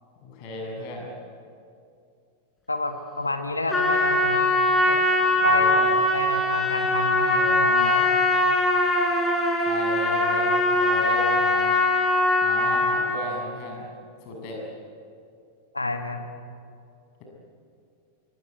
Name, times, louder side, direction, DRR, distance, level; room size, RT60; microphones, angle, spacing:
voice 1, 0.2-1.1 5.4-6.0 7.3-7.6 9.6-11.8 12.4-13.9 14.2-14.6, left 1 dB, 45° left, 1 dB, 7.3 m, -35 dB
voice 2, 2.7-4.6 4.9-5.0 5.4-5.7 6.1-8.1 15.7-16.3, left 2 dB, 80° left, 7 dB, 1.7 m, -29 dB
Trumpet, 3.7-13.2, left 2 dB, 15° left, 4.7 m, -21 dB
24.5 x 24.5 x 9.4 m, 2.4 s
figure-of-eight pair, 90°, 0 cm